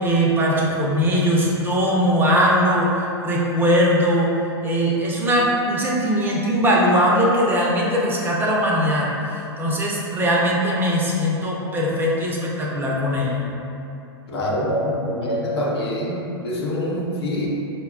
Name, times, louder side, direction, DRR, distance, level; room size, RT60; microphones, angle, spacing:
voice 1, 0.0-4.3 4.6-9.1 9.6-13.4, equal, 15° right, -4 dB, 0.6 m, -20 dB
voice 2, 14.3-17.5, left 1 dB, 70° left, -3 dB, 0.8 m, -25 dB
5.0 x 2.2 x 2.4 m, 2.9 s
hypercardioid pair, 105°, 14 cm